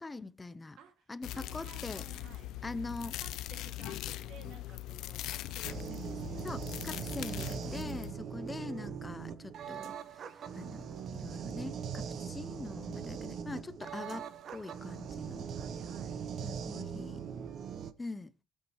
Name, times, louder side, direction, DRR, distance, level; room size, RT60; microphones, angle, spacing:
voice 1, 0.0-0.8 1.1-2.0 2.6-3.1 6.4-15.4 16.4-17.2 18.0-18.3, left 3 dB, 15° left, 0.5 m, -43 dB
voice 2, 0.8-2.6 3.0-6.7 7.4-8.1 15.5-16.2 16.9-17.7, right 7 dB, 75° right, 1.9 m, -55 dB
sound 1, 1.2-8.1, left 14 dB, 85° left, 0.5 m, -41 dB
sound 2, 1.6-2.6 3.6-4.6 5.6-6.6 7.6-8.7, right 3 dB, 25° right, 4.5 m, -63 dB
sound 3, 5.6-17.9, right 7 dB, 55° right, 0.8 m, -41 dB
22.5 x 7.9 x 3.0 m
cardioid pair, 130°, 0 cm